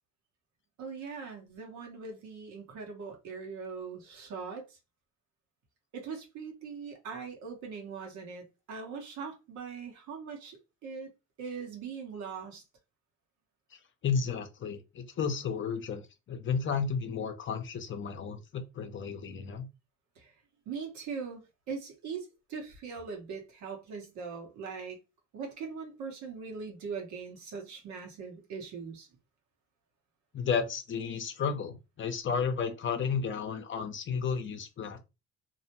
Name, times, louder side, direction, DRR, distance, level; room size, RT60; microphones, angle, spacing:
voice 1, 0.8-4.6 5.9-11.1 11.4-12.6 20.2-20.3 20.7-21.4 21.7-25.0 25.3-29.1, right 5 dB, 70° right, 1.1 m, -41 dB
voice 2, 14.0-19.7 30.3-35.0, left 6 dB, 40° left, 0.6 m, -33 dB
2.5 x 2.1 x 2.9 m
supercardioid pair, 85°, 29 cm